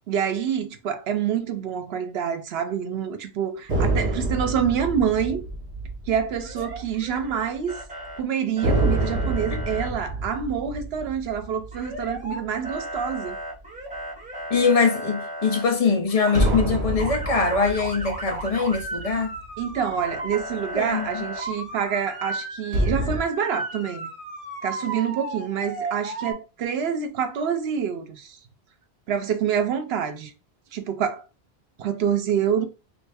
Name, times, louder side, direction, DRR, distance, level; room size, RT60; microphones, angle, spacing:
voice 1, 0.1-5.4 6.1-7.8 8.2-13.4 19.6-24.1 24.6-28.4 29.1-30.3 30.7-31.2 31.8-32.7, right 8 dB, 75° right, 0.9 m, -27 dB
sound 1, 3.7-7.4 7.7-7.8 8.6-13.2 16.3-20.0 22.7-23.2, right 1 dB, 40° right, 1.1 m, -27 dB
Motor vehicle (road) / Siren, 6.4-7.4 7.7-8.2 8.6-9.9 11.7-12.4 12.6-15.6 16.1-16.6 17.0-26.3, right 2 dB, 5° right, 1.6 m, -35 dB
voice 2, 14.5-19.3 20.7-21.3, left 4 dB, 40° left, 0.7 m, -23 dB
3.2 x 2.6 x 3.4 m
omnidirectional pair, 1.1 m